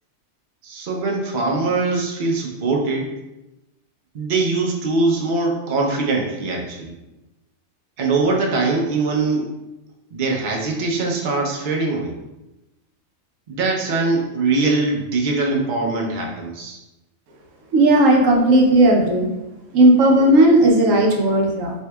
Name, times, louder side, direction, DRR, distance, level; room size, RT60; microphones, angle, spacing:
voice 1, 0.6-3.2 4.1-6.9 8.0-9.5 10.1-12.1 13.5-16.8, right 3 dB, 50° right, 0 dB, 0.6 m, -22 dB
voice 2, 17.7-19.3 19.7-21.7, right 1 dB, 80° right, 0 dB, 1.0 m, -14 dB
4.4 x 2.7 x 2.2 m, 0.98 s
omnidirectional pair, 1.4 m